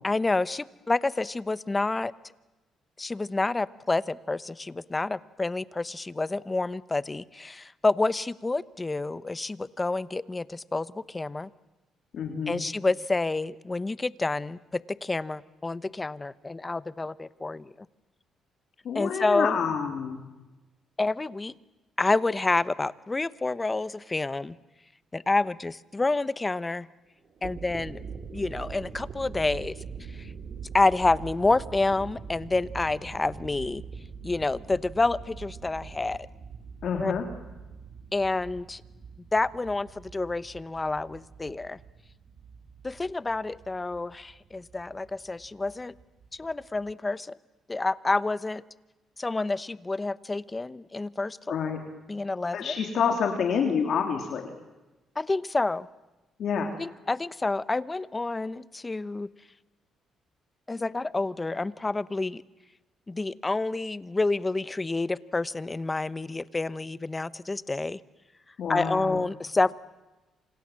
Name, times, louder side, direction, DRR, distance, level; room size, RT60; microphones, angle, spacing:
voice 1, 0.0-2.1 3.0-11.5 12.5-17.7 18.9-19.6 21.0-21.5 22.0-24.6 25.1-26.9 27.4-28.0 28.3-29.8 30.2-30.3 30.7-33.8 34.2-36.3 36.9-37.1 38.1-38.8 39.3-41.8 42.8-45.9 46.3-47.4 47.7-48.6 49.2-51.4 52.1-52.8 55.2-55.9 56.8-59.3 60.7-62.4 63.1-68.0 68.7-69.7, left 3 dB, 20° left, 17 dB, 0.9 m, -28 dB
voice 2, 12.1-12.6 18.9-20.2 36.8-37.3 51.5-51.8 52.5-54.5 56.4-56.7 68.6-69.2, left 6 dB, 65° left, 3 dB, 3.5 m, -28 dB
sound 1, 27.2-46.9, right 5 dB, 55° right, 3.3 m, -44 dB
28.5 x 27.0 x 7.6 m, 1.1 s
cardioid pair, 90°, 0 cm